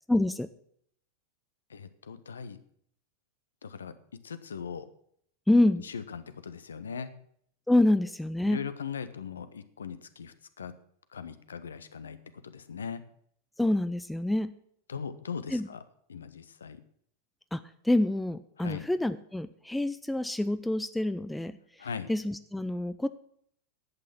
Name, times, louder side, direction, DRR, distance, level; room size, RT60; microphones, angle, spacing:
voice 1, 0.1-0.5 5.5-5.8 7.7-8.6 13.6-14.5 15.5-15.7 17.5-23.1, left 1 dB, 5° left, 12 dB, 0.5 m, -27 dB
voice 2, 1.7-2.6 3.6-3.9 4.2-4.9 5.8-7.1 8.5-10.8 11.1-12.2 12.4-13.0 14.9-15.8 16.1-16.8 18.6-18.9 21.8-22.1, left 6 dB, 70° left, 13 dB, 0.9 m, -39 dB
11.0 x 8.6 x 6.0 m, 0.66 s
figure-of-eight pair, 90°, 0 cm